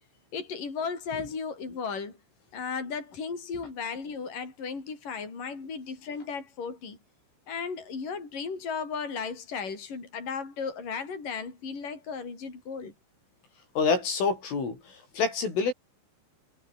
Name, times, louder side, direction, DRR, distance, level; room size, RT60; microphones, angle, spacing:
voice 1, 0.3-2.2 2.5-7.0 7.5-12.9, left 5 dB, 40° left, 8.1 m, -35 dB
voice 2, 13.8-15.7, left 4 dB, 75° left, 10.5 m, -27 dB
omnidirectional pair, 5.7 m